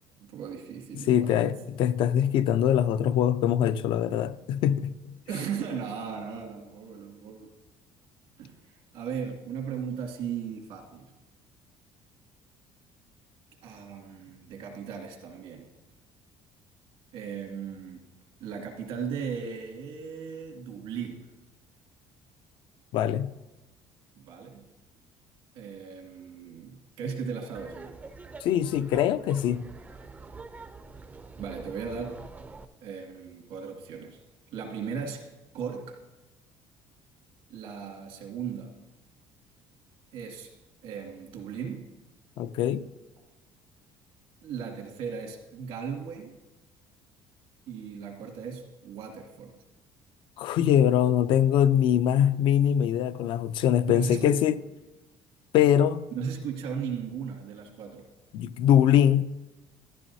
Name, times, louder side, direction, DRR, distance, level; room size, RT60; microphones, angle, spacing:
voice 1, 0.2-1.5 5.3-7.5 8.4-11.1 13.6-15.7 17.1-18.0 18.4-21.3 24.2-24.7 25.5-28.0 31.4-32.2 32.8-34.2 34.5-36.0 37.5-38.7 40.1-40.5 40.8-41.9 44.4-46.3 47.7-49.5 53.9-54.4 56.1-58.1, right 6 dB, 80° right, 2.1 m, -37 dB
voice 2, 0.9-4.9 22.9-23.3 28.4-29.7 42.4-42.8 50.4-54.5 55.5-56.1 58.3-59.2, left 10 dB, 60° left, 0.4 m, -23 dB
Laughter, 27.5-32.6, right 3 dB, 15° right, 0.4 m, -45 dB
13.5 x 10.5 x 2.7 m
cardioid pair, 145°, 9 cm